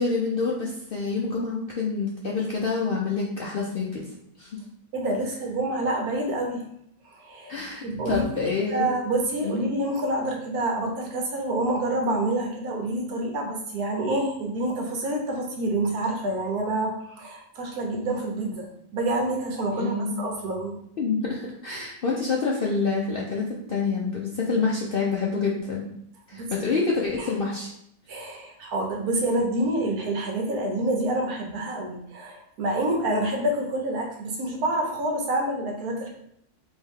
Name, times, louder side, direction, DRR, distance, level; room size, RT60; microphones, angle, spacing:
voice 1, 0.0-4.0 4.4-4.5 7.5-9.0 9.4-9.5 19.7-20.2 21.0-23.4 23.7-25.9 26.3-27.7, left 4 dB, 70° left, -3 dB, 0.5 m, -27 dB
voice 2, 4.9-6.6 7.0-8.2 8.7-18.7 18.9-20.7 21.7-21.8 27.2-27.3 28.1-36.1, right 1 dB, 75° right, 1 dB, 1.3 m, -27 dB
3.7 x 3.0 x 3.5 m, 0.72 s
omnidirectional pair, 1.6 m